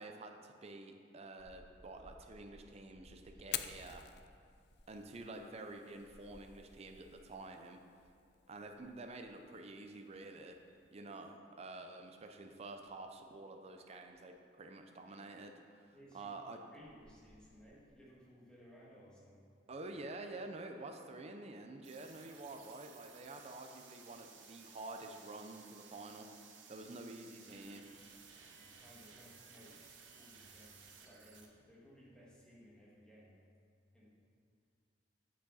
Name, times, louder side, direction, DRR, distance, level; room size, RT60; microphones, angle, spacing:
voice 1, 0.0-4.0 4.9-7.8 8.5-10.6 10.9-15.5 16.1-16.6 19.7-26.3 26.7-27.9, right 2 dB, 35° right, 4 dB, 0.5 m, -49 dB
sound 1, 1.4-7.4 7.8-8.2 8.5-9.5 10.1-12.4 12.8-13.0 14.1-14.2 16.3-16.4 16.8-17.7, equal, 70° right, 2.2 m, -63 dB
Fire, 3.4-11.4, left 12 dB, 60° left, 0.3 m, -50 dB
voice 2, 15.9-16.3 16.7-19.5 28.5-33.4 33.9-34.1, equal, 5° left, -7 dB, 1.8 m, -60 dB
sound 2, 21.8-31.5, right 6 dB, 85° right, 0.9 m, -58 dB
8.3 x 6.3 x 4.1 m, 2.3 s
head